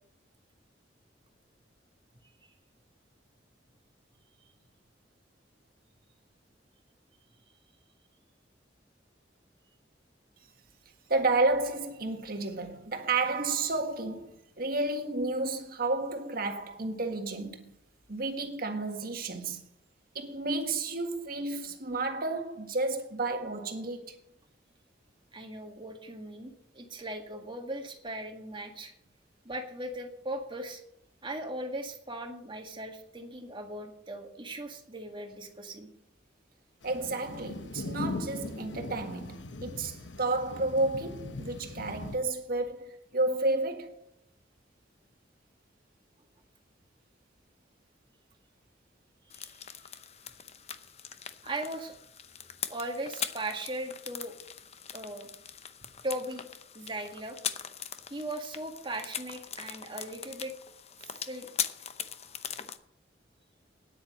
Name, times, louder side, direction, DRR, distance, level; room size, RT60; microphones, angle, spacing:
voice 1, 11.1-17.7 18.1-19.6 20.2-24.2 36.8-44.1, right 2 dB, 55° right, 1.7 m, -31 dB
voice 2, 25.3-28.9 29.5-30.8 31.2-35.9 49.4-49.5 51.4-51.9 52.7-54.4 54.9-55.3 56.0-56.5 56.7-57.4 58.1-60.5 61.0-61.5, right 1 dB, 30° right, 1.9 m, -38 dB
sound 1, 36.8-42.2, left 2 dB, 85° left, 0.9 m, -40 dB
sound 2, 49.3-62.8, left 8 dB, 35° left, 0.7 m, -41 dB
10.0 x 8.8 x 7.4 m
head